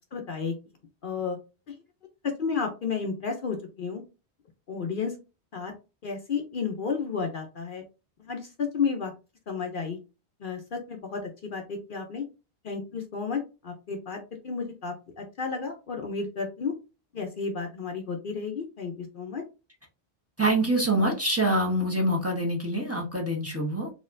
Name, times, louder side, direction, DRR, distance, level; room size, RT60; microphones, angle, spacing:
voice 1, 0.1-0.5 1.0-1.4 1.7-1.8 2.2-4.0 4.7-5.1 5.5-5.7 6.0-7.8 8.3-9.1 9.5-10.0 10.4-12.2 12.6-16.7 17.1-19.4, left 5 dB, 55° left, 3 dB, 0.8 m, -32 dB
voice 2, 20.4-23.9, right 1 dB, 15° right, -2 dB, 1.0 m, -25 dB
4.1 x 3.0 x 2.5 m, 0.30 s
omnidirectional pair, 1.1 m